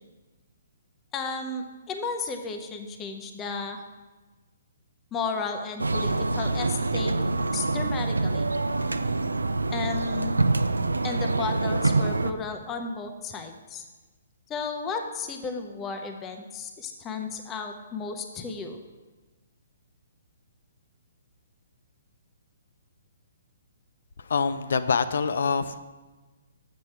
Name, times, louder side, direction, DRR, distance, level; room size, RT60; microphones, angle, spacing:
voice 1, 1.1-3.8 5.1-7.2 7.5-8.5 9.7-10.3 11.0-13.8 14.5-18.8, left 4 dB, 20° left, 5 dB, 0.6 m, -33 dB
sound 1, 5.8-12.3, right 3 dB, 85° right, 0.4 m, -26 dB
voice 2, 24.2-25.8, left 5 dB, 65° left, 13 dB, 0.4 m, -25 dB
7.4 x 6.3 x 4.5 m, 1.2 s
figure-of-eight pair, 130°, 0 cm